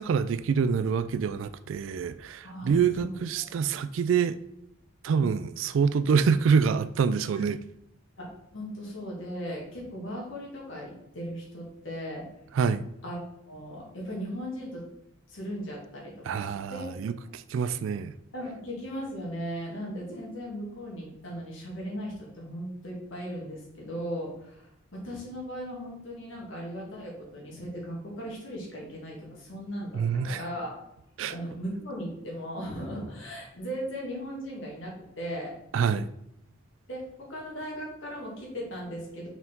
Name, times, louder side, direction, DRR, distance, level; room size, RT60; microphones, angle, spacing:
voice 1, 0.0-4.4 5.0-7.6 12.5-12.8 16.3-18.1 29.9-30.4 31.2-31.3 35.7-36.1, right 6 dB, 70° right, 0.3 m, -26 dB
voice 2, 2.4-3.8 5.1-5.3 7.4-7.5 8.2-12.2 13.0-13.2 13.4-14.8 15.3-16.9 17.2-17.3 18.3-30.8 31.3-35.5 36.9-39.3, equal, 70° left, 2.3 m, -37 dB
5.8 x 4.6 x 3.8 m
head